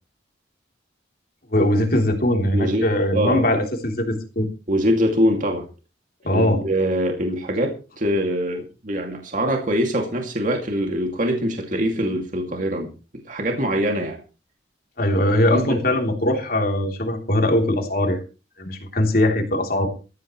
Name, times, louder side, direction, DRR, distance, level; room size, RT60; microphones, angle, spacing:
voice 1, 1.5-4.5 6.2-6.6 15.0-18.2 18.6-19.9, left 1 dB, 50° left, 3 dB, 3.4 m, -21 dB
voice 2, 2.5-2.9 3.1-3.4 4.7-5.6 6.3-12.9 13.2-14.2 15.5-15.8, equal, 45° right, 3 dB, 2.4 m, -23 dB
18.0 x 14.0 x 3.2 m, 0.33 s
head